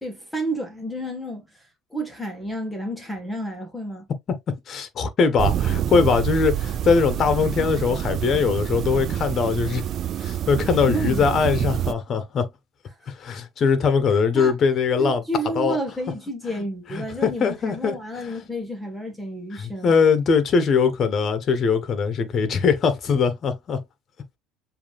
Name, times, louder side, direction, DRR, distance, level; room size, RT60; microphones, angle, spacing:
voice 1, 0.0-4.1 10.9-11.2 14.3-14.5 15.0-19.9, right 1 dB, 5° left, 1.6 m, -31 dB
voice 2, 4.5-9.8 10.2-12.5 13.1-15.2 15.5-15.8 16.9-18.3 19.5-23.8, left 5 dB, 40° left, 1.3 m, -21 dB
sound 1, 5.4-11.9, right 11 dB, 50° right, 0.4 m, -26 dB
7.1 x 2.9 x 2.5 m
supercardioid pair, 105°, 0 cm